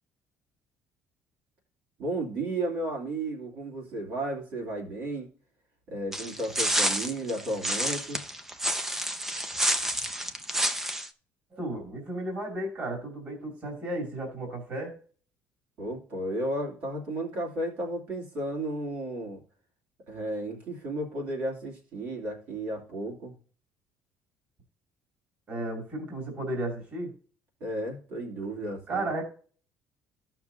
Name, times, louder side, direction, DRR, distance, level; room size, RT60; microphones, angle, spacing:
voice 1, 2.0-5.3 5.9-8.2 15.8-19.4 20.1-23.3 27.6-29.1, right 1 dB, 50° right, -2 dB, 2.8 m, -33 dB
sound 1, 6.1-11.1, right 1 dB, 10° right, 0.6 m, -29 dB
voice 2, 11.5-14.9 25.5-27.1 28.9-29.2, right 1 dB, 30° right, 0 dB, 2.6 m, -34 dB
14.5 x 5.9 x 2.7 m, 0.42 s
cardioid pair, 180°, 4 cm